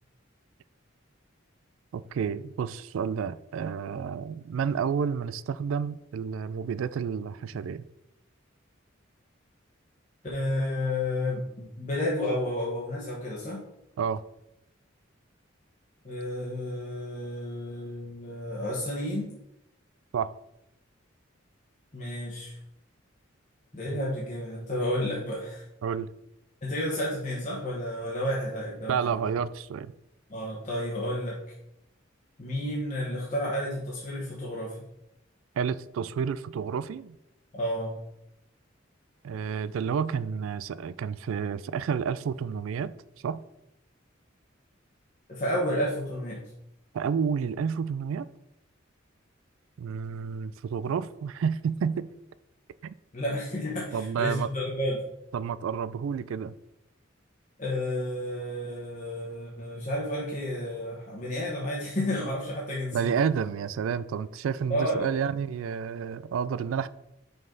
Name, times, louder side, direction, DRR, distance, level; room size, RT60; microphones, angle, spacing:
voice 1, 1.9-7.9 14.0-14.2 20.1-20.3 23.9-24.0 25.8-26.1 28.9-29.9 35.6-37.2 39.2-42.9 43.2-43.4 46.9-48.3 49.8-52.1 52.8-52.9 53.9-54.5 55.3-56.5 62.9-66.9, right 6 dB, 85° right, 0.3 m, -30 dB
voice 2, 10.3-13.6 16.0-19.3 21.9-22.6 23.7-25.6 26.6-29.2 30.3-31.4 32.4-34.8 37.5-38.0 45.3-46.4 53.1-55.1 57.6-63.1 64.7-65.1, left 1 dB, 40° left, 1.2 m, -31 dB
5.5 x 5.4 x 3.9 m
head